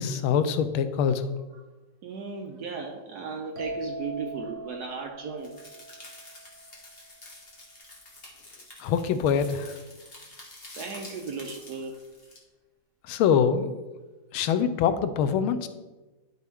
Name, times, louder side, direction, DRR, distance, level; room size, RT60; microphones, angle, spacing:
voice 1, 0.0-1.3 8.8-9.7 13.1-13.8 14.3-15.7, left 7 dB, 85° left, 11 dB, 1.4 m, -24 dB
voice 2, 2.0-5.6 10.7-12.1, right 4 dB, 70° right, 3 dB, 1.0 m, -36 dB
sound 1, 3.6-7.2, right 2 dB, 45° right, 1.1 m, -41 dB
sound 2, 5.4-12.4, left 2 dB, 30° left, 1.5 m, -48 dB
12.0 x 3.9 x 3.5 m, 1.2 s
omnidirectional pair, 2.3 m